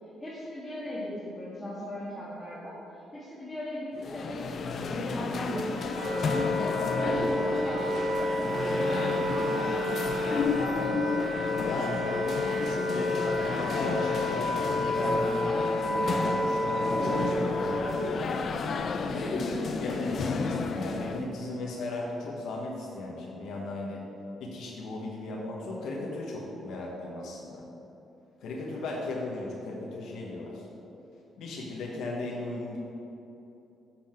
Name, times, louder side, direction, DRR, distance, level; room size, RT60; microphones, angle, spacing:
voice 1, 0.2-10.0 19.1-19.6, left 1 dB, 15° left, -8 dB, 1.8 m, -38 dB
sound 1, 4.0-21.3, left 4 dB, 55° left, 0.5 m, -32 dB
Wind instrument woodwind instrument, 5.5-18.1, left 1 dB, 40° right, 1.1 m, -30 dB
voice 2, 11.6-15.5 15.8-18.1 19.1-24.1 24.4-27.6 28.4-30.7 31.4-32.8, left 2 dB, 75° left, -3 dB, 1.1 m, -36 dB
7.5 x 5.7 x 4.5 m, 3.0 s
cardioid pair, 90°, 0 cm